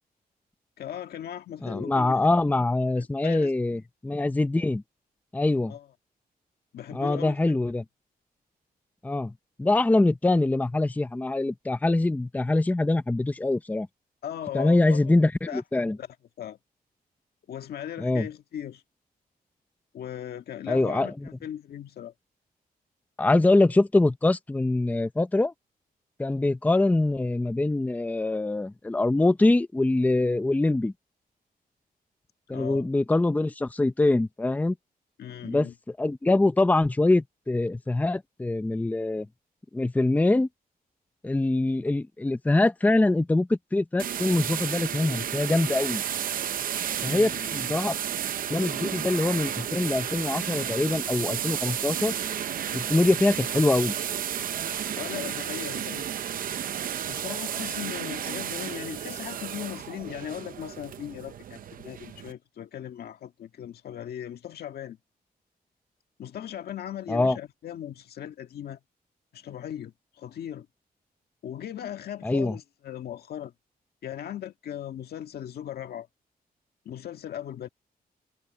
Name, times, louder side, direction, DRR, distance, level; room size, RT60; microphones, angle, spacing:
voice 1, 0.8-2.2 3.0-3.5 5.7-5.9 6.7-7.6 14.2-15.0 15.5-15.6 16.0-16.1 16.4-16.6 17.5-18.8 19.9-22.1 32.5-32.9 35.2-35.7 47.0-47.6 55.0-56.1 57.1-65.0 66.2-68.8 69.3-70.7 71.4-73.5 74.0-76.1 76.9-77.7, left 10 dB, 85° left, 1.7 m, -38 dB
voice 2, 1.6-4.8 5.3-5.8 6.9-7.8 9.0-9.3 9.6-13.9 14.5-16.0 18.0-18.3 20.7-21.1 23.2-25.5 26.2-30.9 32.5-34.7 35.4-35.7 36.0-39.3 39.7-40.5 41.2-46.0 47.0-47.9 48.5-52.1 52.7-53.9 67.1-67.4 72.2-72.5, left 2 dB, 10° left, 0.7 m, -24 dB
sound 1, 44.0-62.3, right 9 dB, 65° right, 0.7 m, -32 dB
wide cardioid pair, 155°, 16 cm